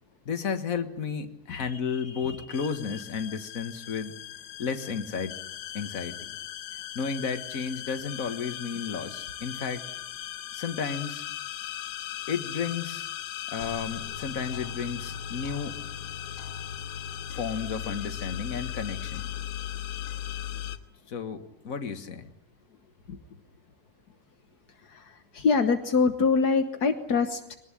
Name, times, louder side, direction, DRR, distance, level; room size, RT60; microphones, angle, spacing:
voice 1, 0.2-4.1 4.6-5.4 5.7-6.3 6.9-9.8 10.5-11.2 12.3-13.1 13.5-15.8 17.3-19.2 21.1-22.3, left 6 dB, 40° left, 8 dB, 1.4 m, -33 dB
sound 1, 2.5-20.8, left 11 dB, 80° left, 2.7 m, -38 dB
voice 2, 25.3-27.6, left 4 dB, 60° left, 7 dB, 1.0 m, -24 dB
23.0 x 19.5 x 10.0 m, 0.82 s
omnidirectional pair, 3.5 m